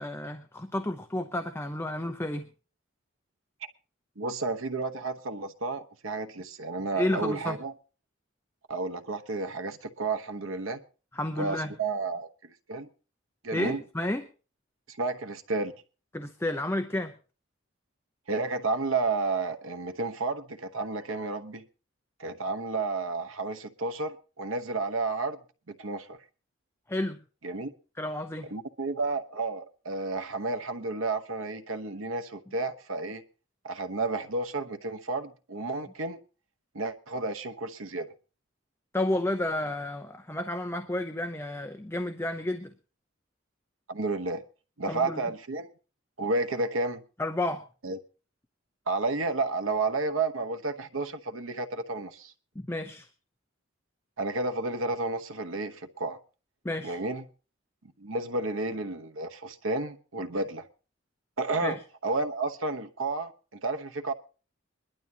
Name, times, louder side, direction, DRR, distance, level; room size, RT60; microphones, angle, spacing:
voice 1, 0.0-2.5 6.9-7.6 11.1-11.7 13.5-14.2 16.1-17.1 26.9-27.2 28.0-28.5 38.9-42.7 44.9-45.2 47.2-47.6 52.6-53.1 56.6-57.0 61.6-61.8, left 1 dB, 10° left, 0.7 m, -31 dB
voice 2, 4.2-7.7 8.7-10.8 11.4-12.9 13.4-13.8 14.9-15.7 18.3-21.6 22.2-25.4 25.7-26.2 27.4-27.7 28.5-33.2 33.6-36.2 36.7-38.1 43.9-44.4 44.8-45.7 46.2-47.0 47.8-48.0 48.9-52.3 54.2-56.2 56.8-57.3 58.0-60.6 61.4-61.8 62.0-64.1, right 3 dB, 90° right, 1.1 m, -31 dB
22.0 x 11.5 x 2.8 m
head